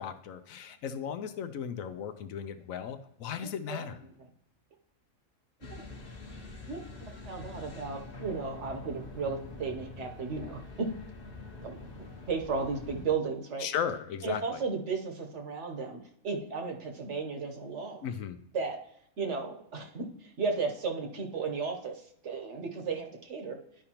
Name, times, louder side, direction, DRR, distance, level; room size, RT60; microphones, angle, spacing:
voice 1, 0.0-4.0 13.6-14.6 18.0-18.4, left 8 dB, 75° left, 9 dB, 1.0 m, -36 dB
sound 1, 5.6-13.1, left 3 dB, 45° left, 1.2 m, -45 dB
voice 2, 6.7-10.9 11.6-13.7 14.2-18.1 18.5-18.8 19.2-23.6, right 4 dB, 60° right, 3 dB, 1.2 m, -35 dB
11.5 x 5.1 x 2.9 m, 0.71 s
omnidirectional pair, 1.5 m